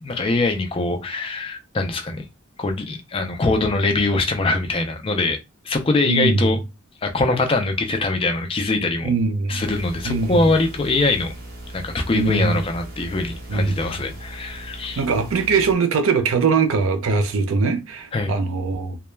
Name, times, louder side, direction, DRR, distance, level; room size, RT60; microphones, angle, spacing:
voice 1, 0.0-2.3 2.6-5.4 5.6-6.6 7.0-9.1 9.5-11.3 11.7-15.0 18.1-18.3, left 2 dB, 25° left, 0.4 m, -22 dB
voice 2, 6.1-6.6 9.0-9.6 10.0-10.5 12.1-12.6 13.5-13.8 15.0-19.0, right 4 dB, 80° right, 0.5 m, -21 dB
sound 1, 9.6-15.7, right 1 dB, 50° right, 0.9 m, -38 dB
2.2 x 2.1 x 3.1 m
head